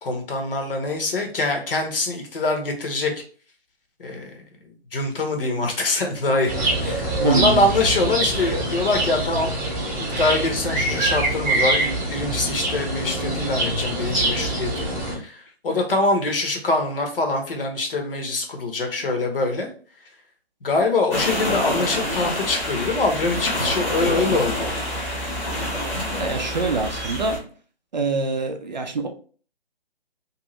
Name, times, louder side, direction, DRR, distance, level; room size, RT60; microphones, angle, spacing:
voice 1, 0.0-3.1 4.0-4.4 4.9-9.5 10.2-19.7 20.6-24.7, left 2 dB, 60° left, 0.9 m, -24 dB
sound 1, 6.4-15.1, right 2 dB, 15° right, 0.8 m, -24 dB
voice 2, 7.2-7.6 26.2-27.4 27.9-29.1, right 4 dB, 45° right, 0.4 m, -24 dB
sound 2, 21.1-27.4, left 1 dB, 15° left, 0.8 m, -27 dB
2.6 x 2.4 x 3.0 m
figure-of-eight pair, 150°, 32 cm